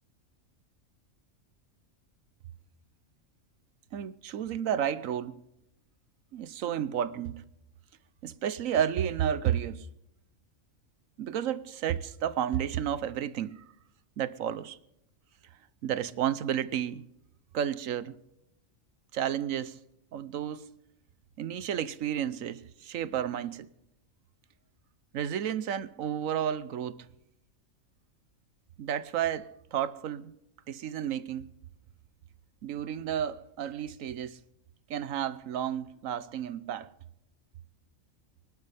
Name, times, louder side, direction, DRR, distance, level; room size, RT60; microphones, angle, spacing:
voice 1, 3.9-5.4 6.3-7.4 8.2-9.9 11.2-13.6 14.2-14.8 15.8-17.0 17.5-18.2 19.1-19.8 20.1-20.7 21.4-23.7 25.1-27.1 28.8-30.3 30.7-31.6 32.6-34.4 34.9-36.9, right 9 dB, 85° right, 1.2 m, -32 dB
24.5 x 11.5 x 3.4 m
omnidirectional pair, 1.4 m